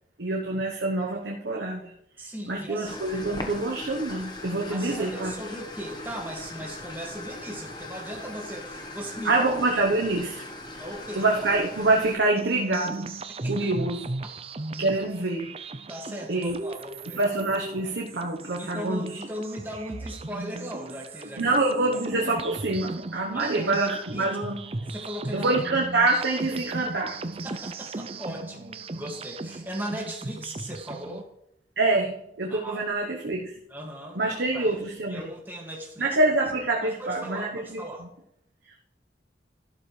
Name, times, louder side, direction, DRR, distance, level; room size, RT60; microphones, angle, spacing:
voice 1, 0.2-1.9 2.5-5.3 9.2-10.4 11.1-13.1 13.5-14.1 14.8-15.6 16.3-16.6 17.1-19.2 21.4-24.7 25.3-27.2 31.8-33.6 34.1-35.3 36.0-38.1, right 2 dB, 85° right, -1 dB, 1.1 m, -26 dB
voice 2, 2.2-3.0 4.7-9.3 10.8-11.3 13.4-13.7 15.9-17.2 18.6-21.6 22.1-22.2 23.3-23.7 24.1-24.3 24.8-25.6 27.4-31.3 32.5-32.9 33.7-34.8 35.1-36.1 36.8-38.0, equal, 10° right, -1 dB, 2.1 m, -38 dB
sound 1, 2.8-12.2, left 2 dB, 25° left, 1.3 m, -40 dB
sound 2, 12.4-31.2, right 2 dB, 35° right, 0.5 m, -37 dB
12.0 x 12.0 x 3.3 m, 0.77 s
head